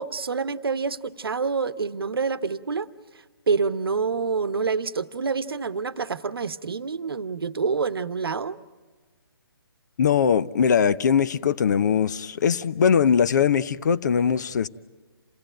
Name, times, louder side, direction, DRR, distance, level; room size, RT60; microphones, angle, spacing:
voice 1, 0.0-2.9 3.5-8.6, right 5 dB, 75° right, 1.0 m, -27 dB
voice 2, 10.0-14.7, left 7 dB, 50° left, 0.6 m, -21 dB
28.0 x 17.0 x 9.0 m
figure-of-eight pair, 150°, 13 cm